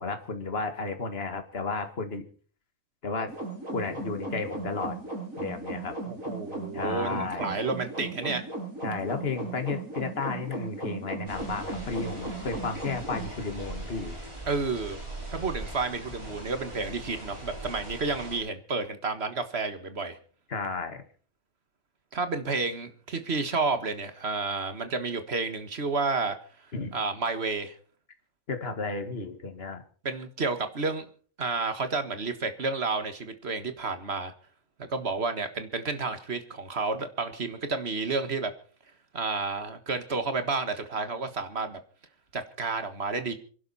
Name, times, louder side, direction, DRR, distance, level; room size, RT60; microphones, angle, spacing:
voice 1, 0.0-2.3 3.0-3.3 3.7-5.0 5.4-5.9 6.7-7.5 8.8-14.2 20.5-21.0 26.7-26.9 28.5-29.8, left 4 dB, 50° left, 7 dB, 2.0 m, -33 dB
sound 1, 3.3-13.3, right 3 dB, 85° right, 6.6 m, -37 dB
voice 2, 6.1-8.4 14.5-15.0 15.3-20.2 22.1-26.4 26.9-27.8 30.0-31.1 31.4-34.3 34.8-38.5 39.1-41.8 42.3-43.3, right 4 dB, 50° right, 9 dB, 1.8 m, -30 dB
sound 2, 11.3-18.4, right 1 dB, 20° right, 4.9 m, -41 dB
26.5 x 11.5 x 4.2 m, 0.43 s
omnidirectional pair, 1.4 m